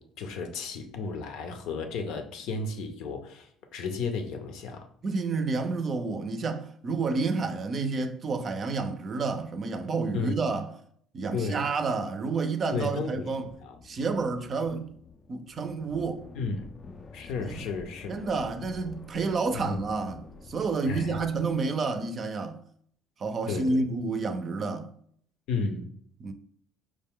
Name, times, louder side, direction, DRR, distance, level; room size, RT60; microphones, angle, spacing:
voice 1, 0.0-4.9 10.1-10.4 11.3-11.7 12.7-13.3 13.6-13.7 16.3-16.6 17.1-18.2 19.5-19.8 20.9-21.2 23.5-23.8 25.5-25.9, left 4 dB, 75° left, 0.6 m, -33 dB
voice 2, 5.0-10.7 11.1-13.5 13.8-14.9 15.3-16.2 17.4-17.6 18.1-22.6 23.2-24.9 26.2-26.3, right 4 dB, 40° right, 0.4 m, -29 dB
sound 1, 13.4-21.8, left 4 dB, 35° left, 0.4 m, -48 dB
4.7 x 2.1 x 3.6 m
cardioid pair, 100°, 0 cm